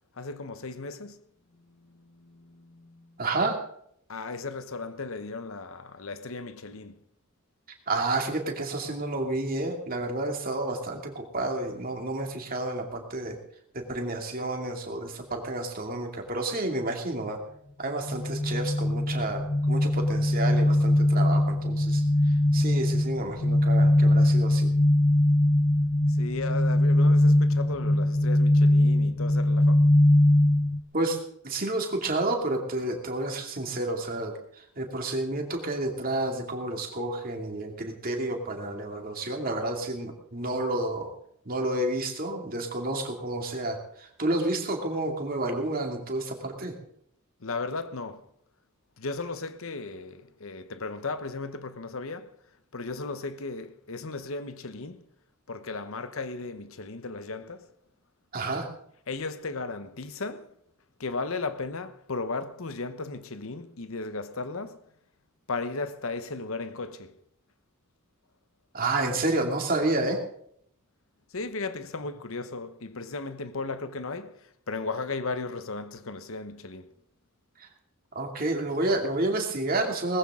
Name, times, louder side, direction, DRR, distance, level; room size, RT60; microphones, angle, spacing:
voice 1, 0.2-1.2 1.7-3.2 4.1-7.0 26.1-29.9 47.4-48.3 49.0-52.4 52.7-55.1 55.5-57.7 59.1-60.5 61.0-64.8 65.5-67.2 71.3-76.9, left 3 dB, 65° left, 0.9 m, -36 dB
voice 2, 3.2-3.6 7.9-13.4 13.7-17.4 17.8-22.0 22.5-24.7 30.9-31.2 31.4-34.4 34.8-41.1 41.5-46.8 58.3-58.7 68.7-70.2 78.1-80.2, right 2 dB, 40° right, 2.5 m, -30 dB
sound 1, 18.0-30.8, left 1 dB, 40° left, 0.8 m, -21 dB
19.5 x 14.5 x 3.7 m
head